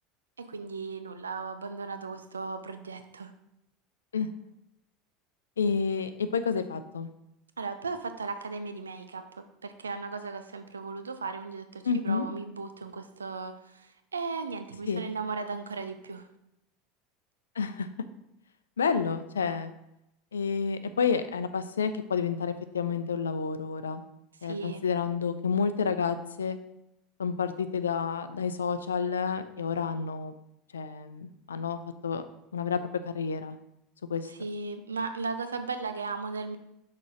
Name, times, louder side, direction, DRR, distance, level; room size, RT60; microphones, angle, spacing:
voice 1, 0.4-3.3 7.6-16.3 24.4-24.8 34.3-36.6, right 4 dB, 85° right, 8 dB, 0.6 m, -36 dB
voice 2, 5.6-7.1 11.8-12.3 14.9-15.1 17.6-17.9 18.8-19.7 20.3-24.0 24.4-26.6 27.2-30.3 30.7-32.2 32.5-32.8 33.1-33.6 34.1-34.3, left 6 dB, 80° left, 11 dB, 0.5 m, -29 dB
6.1 x 4.2 x 4.9 m, 0.84 s
figure-of-eight pair, 75°, 0 cm